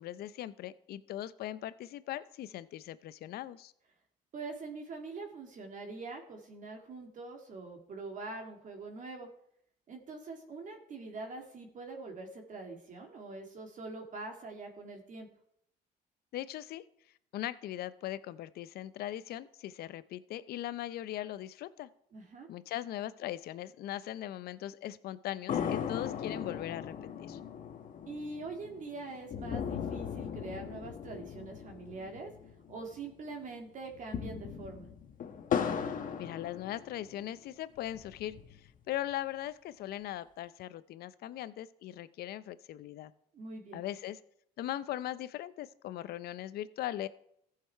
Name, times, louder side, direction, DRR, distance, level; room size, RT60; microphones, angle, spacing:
voice 1, 0.0-3.7 16.3-16.8 17.3-21.9 22.5-26.9 27.2-27.4 36.2-43.1 43.7-44.2 44.6-47.1, left 13 dB, 65° left, 16 dB, 0.6 m, -39 dB
voice 2, 4.3-9.3 9.9-15.3 22.1-22.5 28.1-32.3 32.7-34.9 43.3-43.8, right 3 dB, 50° right, 3 dB, 2.0 m, -44 dB
sound 1, 25.5-33.1 33.3-33.4 33.9-37.2 37.8-38.8, left 8 dB, 50° left, 1.1 m, -38 dB
14.5 x 6.6 x 4.5 m, 0.72 s
cardioid pair, 110°, 17 cm